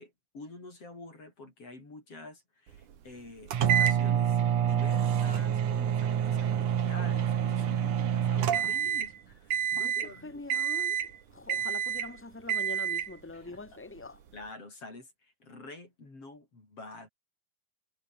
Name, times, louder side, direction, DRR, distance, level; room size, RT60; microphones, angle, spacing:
voice 1, 0.0-10.6 13.3-13.6 14.3-17.1, left 2 dB, 40° left, 8.6 m, -48 dB
sound 1, 3.5-9.2 9.5-10.1 10.5-11.2 11.5-12.1 12.5-13.1, right 9 dB, 60° right, 3.4 m, -27 dB
voice 2, 10.2-11.0 11.3-14.2, left 3 dB, 5° left, 1.9 m, -43 dB
omnidirectional pair, 4.1 m